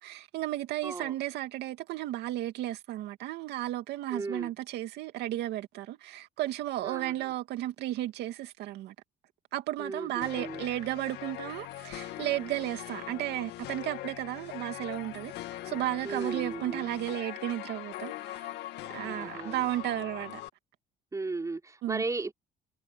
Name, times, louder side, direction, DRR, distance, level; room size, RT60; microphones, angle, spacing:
voice 1, 0.0-8.9 9.5-15.3 15.6-18.5 18.9-20.4 21.8-22.0, right 14 dB, 80° right, 2.4 m, -34 dB
voice 2, 0.8-1.1 4.1-4.5 6.8-7.3 9.8-10.7 16.0-16.9 18.9-19.7 21.1-22.3, right 3 dB, 20° right, 5.0 m, -36 dB
sound 1, 10.2-20.5, left 15 dB, 80° left, 1.9 m, -41 dB
cardioid pair, 110°, 17 cm